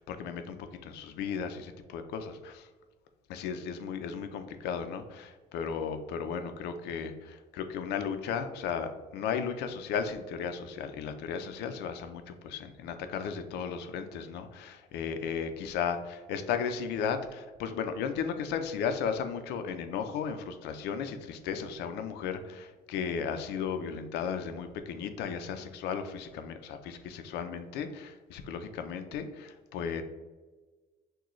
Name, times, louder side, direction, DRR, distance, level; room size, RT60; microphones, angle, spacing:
voice 1, 0.0-2.7 3.3-30.0, left 7 dB, 85° left, 8 dB, 0.5 m, -35 dB
6.1 x 2.2 x 3.1 m, 1.3 s
cardioid pair, 110°, 17 cm